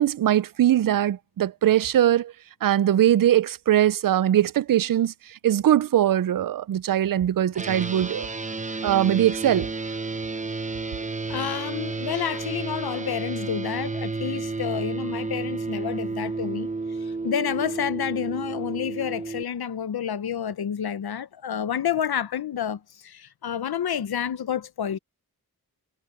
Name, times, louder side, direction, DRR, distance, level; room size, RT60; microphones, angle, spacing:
voice 1, 0.0-2.3 2.6-5.1 5.4-8.3 8.8-9.7, right 11 dB, 65° right, 0.5 m, -21 dB
sound 1, 7.5-19.4, right 3 dB, 20° right, 0.6 m, -31 dB
voice 2, 11.3-16.7 17.0-25.0, left 9 dB, 90° left, 0.8 m, -29 dB
wide cardioid pair, 120°, 36 cm